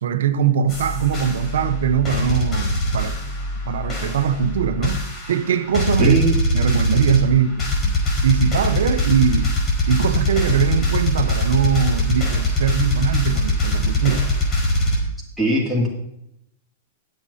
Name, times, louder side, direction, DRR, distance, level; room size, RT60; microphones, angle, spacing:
voice 1, 0.0-3.3 3.6-6.2 6.5-9.5 9.9-14.3, right 8 dB, 80° right, 0.9 m, -21 dB
sound 1, 0.7-15.0, left 1 dB, 25° left, 4.5 m, -22 dB
voice 2, 6.0-6.3 15.4-15.9, right 1 dB, 5° left, 2.5 m, -20 dB
20.0 x 7.7 x 2.8 m
hypercardioid pair, 135°, 0 cm